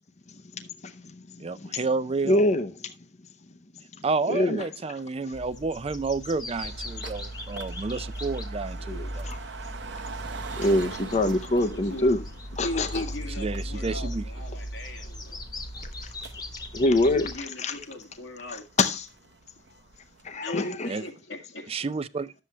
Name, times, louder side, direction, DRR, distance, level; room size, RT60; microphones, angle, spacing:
voice 1, 1.4-2.4 4.0-9.3 13.4-14.2 20.9-21.0 21.7-22.3, right 3 dB, 30° right, 0.4 m, -30 dB
voice 2, 2.2-2.7 4.3-4.7 9.2-9.4 10.6-12.2 12.6-13.0 16.7-17.3 17.6-17.8 18.5-19.1 20.2-20.9, left 1 dB, 40° left, 0.7 m, -24 dB
sound 1, 5.3-17.4, equal, 25° left, 1.2 m, -37 dB
sound 2, 6.6-20.4, right 5 dB, 70° right, 0.9 m, -45 dB
voice 3, 8.8-9.2 11.7-12.1 12.6-15.4 16.9-18.7 19.7-19.8 20.3-21.7, left 1 dB, 90° left, 2.3 m, -38 dB
11.5 x 7.6 x 3.2 m
head